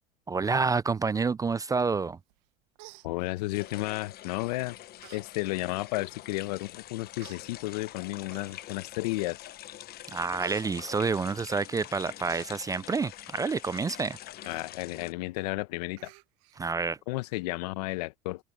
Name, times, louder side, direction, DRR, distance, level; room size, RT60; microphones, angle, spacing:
voice 1, 0.3-2.2 10.1-14.2 16.6-17.0, right 4 dB, 15° right, 0.4 m, -28 dB
Human voice, 2.3-2.5 2.8-3.7 4.4-4.6 5.0-5.2 5.6-5.7 6.5-6.6 7.2-7.4 8.3-8.8 9.3-9.7 10.0-11.7 11.9-12.5 14.4-14.7 15.1-15.2 15.5-15.6 16.0-16.6 17.0-17.1, right 24 dB, 70° right, 1.4 m, -50 dB
voice 2, 3.0-4.8 5.1-9.4 14.5-16.1 17.1-18.4, left 21 dB, 75° left, 1.4 m, -33 dB
sound 1, 3.5-15.1, left 14 dB, 50° left, 1.2 m, -45 dB
hypercardioid pair, 80°, 21 cm